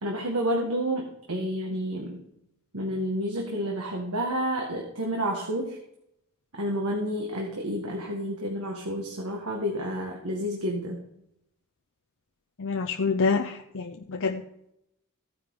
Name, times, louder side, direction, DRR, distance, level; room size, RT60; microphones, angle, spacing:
voice 1, 0.0-2.2 2.7-5.8 6.6-11.0, equal, 80° right, 0 dB, 1.9 m, -30 dB
voice 2, 12.6-14.4, left 4 dB, 65° left, 4 dB, 0.7 m, -27 dB
15.5 x 9.6 x 3.8 m, 0.78 s
head